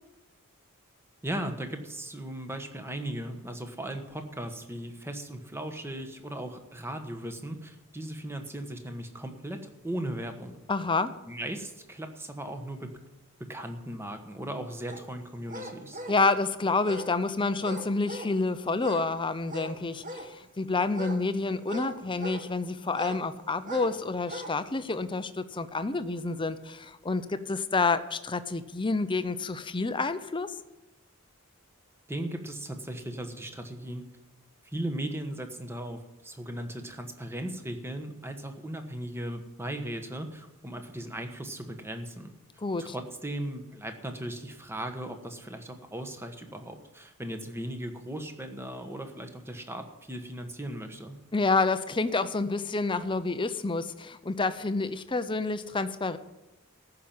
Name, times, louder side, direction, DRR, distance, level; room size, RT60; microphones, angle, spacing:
voice 1, 1.2-9.6 9.8-10.6 11.3-12.9 13.4-16.0 32.1-34.0 34.6-42.3 42.8-51.2, right 1 dB, 10° right, 6 dB, 1.2 m, -37 dB
voice 2, 10.7-11.1 16.1-30.5 42.6-42.9 51.3-56.2, left 3 dB, 25° left, 12 dB, 0.7 m, -28 dB
sound 1, 14.9-15.0 15.5-16.2 16.8-17.1 17.6-18.4 18.7-19.1 19.4-20.3 20.9-22.5 22.9-23.2 23.6-23.9 24.2-24.6 25.0-25.1, equal, 35° right, 1.5 m, -40 dB
14.5 x 5.9 x 8.7 m, 1.0 s
head